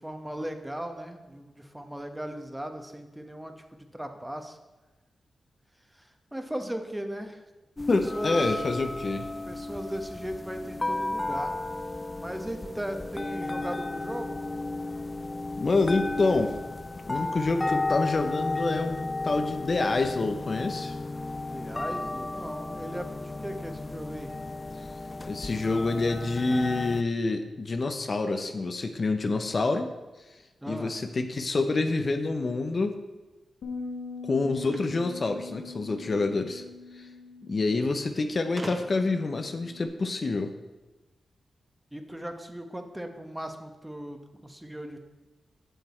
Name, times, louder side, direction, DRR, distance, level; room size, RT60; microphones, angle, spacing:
voice 1, 0.0-3.5 3.9-4.6 5.9-7.4 7.9-8.5 9.5-11.6 12.2-14.5 21.5-24.3 30.6-31.0 37.8-37.9 41.9-45.0, equal, 10° right, 5 dB, 1.1 m, -37 dB
sound 1, 7.8-27.0, left 2 dB, 30° left, 0.4 m, -34 dB
voice 2, 7.9-9.3 15.6-16.5 17.1-20.9 25.3-29.9 30.7-32.9 34.3-36.6 37.0-37.1 37.5-40.5, left 3 dB, 55° left, 6 dB, 0.7 m, -27 dB
Bass guitar, 33.6-39.9, left 4 dB, 85° left, 1.3 m, -42 dB
sound 2, 34.6-36.1 37.2-37.3 37.5-37.6 38.6-39.2, right 1 dB, 25° right, 1.5 m, -43 dB
7.9 x 6.8 x 4.3 m, 1.1 s
supercardioid pair, 40°, 0 cm